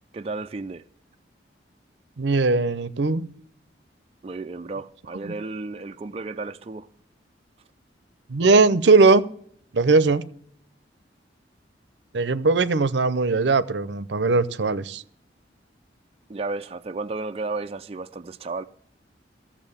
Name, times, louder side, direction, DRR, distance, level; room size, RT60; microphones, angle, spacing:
voice 1, 0.1-0.8 4.2-6.9 16.3-18.6, right 3 dB, 35° right, 0.4 m, -33 dB
voice 2, 2.2-3.3 8.3-9.2 9.7-10.2 12.1-15.0, right 3 dB, 75° right, 0.6 m, -19 dB
14.0 x 7.2 x 7.1 m
head